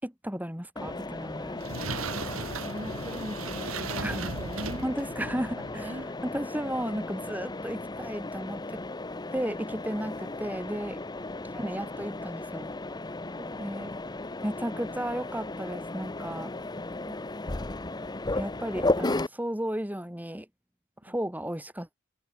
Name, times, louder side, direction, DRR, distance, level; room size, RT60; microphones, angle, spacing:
voice 1, 0.0-1.6 4.0-4.2 4.8-5.9 6.2-8.8 9.3-11.0 11.5-12.7 13.6-13.9 14.4-16.5 18.3-20.5 21.0-21.9, equal, 10° right, 4.4 m, -34 dB
Mechanisms, 0.8-19.3, left 2 dB, 20° left, 0.8 m, -35 dB
sound 1, 1.1-6.0, right 3 dB, 75° right, 6.1 m, -37 dB
voice 2, 2.0-2.3 2.6-5.0 5.7-6.2 13.4-13.7 17.0-17.2 21.0-21.1, right 1 dB, 25° right, 4.1 m, -41 dB
open air
head